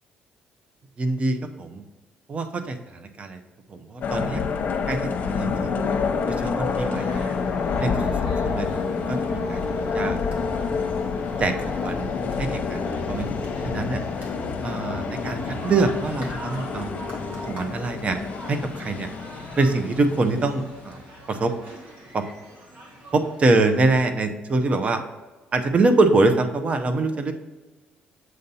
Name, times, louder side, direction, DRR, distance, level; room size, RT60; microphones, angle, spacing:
voice 1, 1.0-1.8 2.3-3.4 3.7-4.4 4.9-5.8 6.3-7.3 7.8-8.1 8.4-9.6 9.9-10.2 10.6-10.7 11.4-11.5 11.8-12.1 12.4-14.0 14.6-17.0 17.5-18.2 18.5-19.1 19.6-21.0 21.3-21.5 22.1-22.2 23.1-25.0 25.5-27.3, right 3 dB, 40° right, 7 dB, 0.7 m, -24 dB
sound 1, 4.0-20.9, left 5 dB, 50° left, 0.9 m, -28 dB
sound 2, 6.6-23.9, right 1 dB, 60° right, 1.7 m, -44 dB
7.8 x 2.7 x 5.4 m, 1.2 s
cardioid pair, 90°, 3 cm